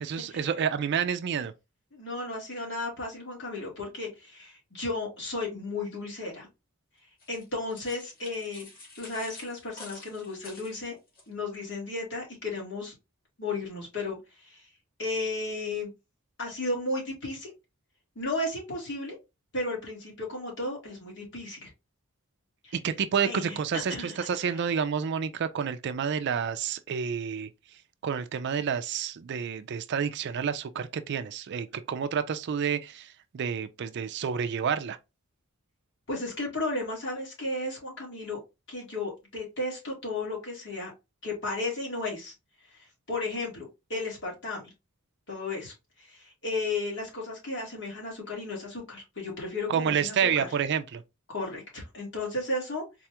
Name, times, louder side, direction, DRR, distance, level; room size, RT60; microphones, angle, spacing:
voice 1, 0.0-1.5 22.7-27.5 28.0-35.0 49.7-51.0, right 7 dB, 55° right, 0.4 m, -29 dB
voice 2, 1.9-6.5 7.3-8.7 9.0-11.0 11.3-12.9 13.4-14.6 15.0-15.9 16.4-17.5 18.2-19.2 19.5-21.7 22.6-22.8 23.2-24.6 36.1-38.4 38.7-40.9 41.2-42.3 42.7-42.8 43.1-44.7 45.3-45.7 46.0-50.5 51.3-52.8, left 2 dB, 60° left, 1.9 m, -34 dB
sound 1, 7.2-11.3, left 2 dB, 45° left, 1.7 m, -49 dB
4.1 x 2.3 x 2.8 m
head